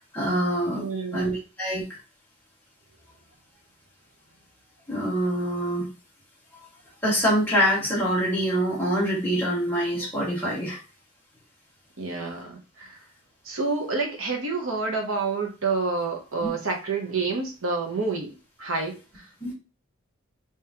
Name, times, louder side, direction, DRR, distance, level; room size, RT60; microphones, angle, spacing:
voice 1, 0.1-0.8 1.1-1.8 4.9-5.9 7.0-10.8 16.4-16.5 19.4-19.5, equal, 10° left, 1.8 m, -25 dB
voice 2, 0.7-1.3 12.0-13.0 13.4-18.3 18.6-19.2, right 4 dB, 75° right, 1.1 m, -28 dB
3.6 x 3.1 x 3.0 m
head